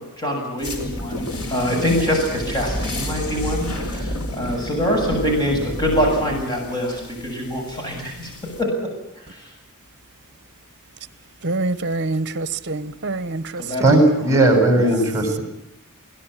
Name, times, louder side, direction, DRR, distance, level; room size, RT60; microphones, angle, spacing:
voice 1, 0.0-8.3 8.6-8.9 9.3-9.5 13.6-13.8 14.4-14.5 14.8-15.0, equal, 20° left, 7.1 m, -24 dB
sound 1, 0.6-8.6, left 1 dB, 85° left, 4.9 m, -30 dB
voice 2, 11.4-13.6 13.9-14.0, right 2 dB, 55° right, 1.1 m, -25 dB
voice 3, 13.8-15.4, right 2 dB, 15° right, 7.8 m, -16 dB
22.5 x 17.5 x 10.0 m
head